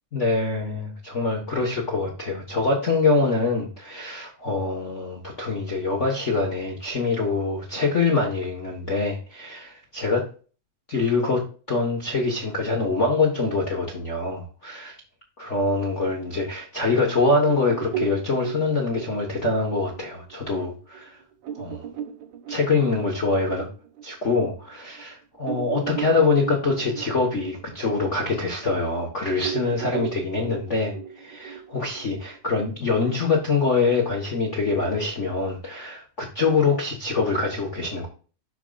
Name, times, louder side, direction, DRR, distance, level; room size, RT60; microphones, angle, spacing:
voice 1, 0.1-10.2 10.9-11.4 11.7-14.9 15.4-21.2 21.5-21.9 22.5-23.7 24.0-38.1, left 3 dB, 55° left, -1 dB, 0.7 m, -24 dB
sound 1, 17.5-24.5 25.0-25.1 25.4-29.0 29.4-32.5, right 9 dB, 65° right, 2.2 m, -36 dB
9.1 x 6.3 x 2.4 m, 0.37 s
omnidirectional pair, 3.4 m